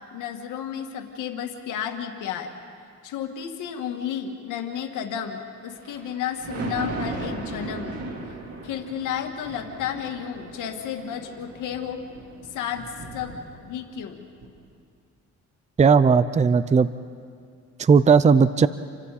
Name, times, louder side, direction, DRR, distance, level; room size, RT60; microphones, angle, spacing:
voice 1, 0.1-2.5 3.0-8.0 8.6-12.0 12.5-13.4 13.6-14.3, left 8 dB, 90° left, 4 dB, 2.0 m, -32 dB
Thunder, 5.7-14.0 14.4-14.5, right 2 dB, 50° right, 3.6 m, -37 dB
voice 2, 15.8-16.9 17.8-18.7, right 5 dB, 25° right, 14 dB, 0.6 m, -16 dB
30.0 x 25.0 x 4.2 m, 2.3 s
cardioid pair, 90°, 30 cm